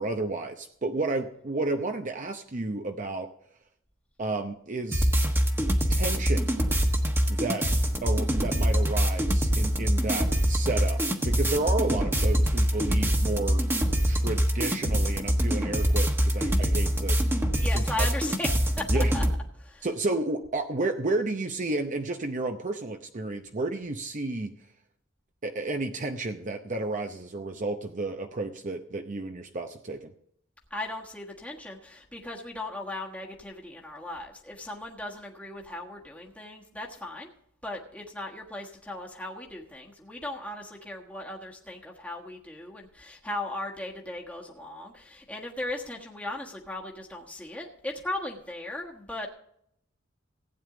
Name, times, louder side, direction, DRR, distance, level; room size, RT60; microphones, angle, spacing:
voice 1, 0.0-3.3 4.2-5.1 5.9-6.6 7.3-7.6 8.0-13.6 14.0-17.2 17.7-18.1 18.9-19.1 19.8-24.5 25.4-30.1, right 2 dB, 40° right, 5 dB, 0.8 m, -31 dB
sound 1, 4.9-19.4, equal, 10° right, 1.2 m, -24 dB
voice 2, 17.6-18.5 18.8-19.2 19.6-19.9 30.7-37.3 37.6-49.3, left 1 dB, 5° left, -2 dB, 1.4 m, -37 dB
16.0 x 9.1 x 3.8 m, 0.70 s
head